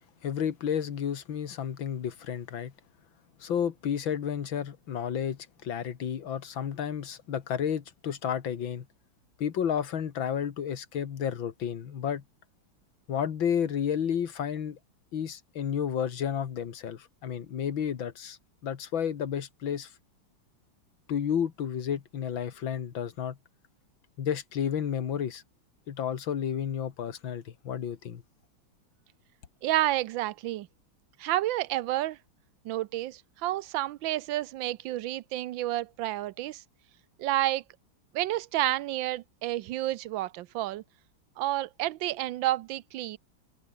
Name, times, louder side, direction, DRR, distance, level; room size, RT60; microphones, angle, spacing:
voice 1, 0.2-2.7 3.4-8.9 9.4-12.2 13.1-14.8 15.1-18.4 18.6-19.9 21.1-23.4 24.2-25.4 25.9-28.2, left 8 dB, 80° left, 2.3 m, -31 dB
voice 2, 29.6-30.7 31.2-32.2 32.6-36.6 37.2-37.6 38.1-40.8 41.4-43.2, right 15 dB, 80° right, 1.4 m, -30 dB
omnidirectional pair, 2.1 m